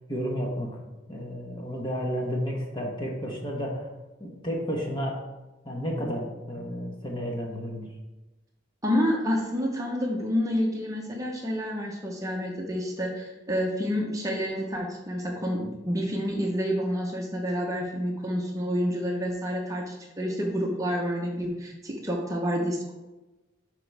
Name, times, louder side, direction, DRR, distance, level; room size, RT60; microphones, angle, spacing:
voice 1, 0.1-0.8 1.1-3.9 4.2-5.2 5.6-7.9, equal, 25° left, -1 dB, 1.2 m, -32 dB
voice 2, 8.8-22.9, equal, 15° right, -1 dB, 1.0 m, -29 dB
10.5 x 4.8 x 3.4 m, 1.1 s
head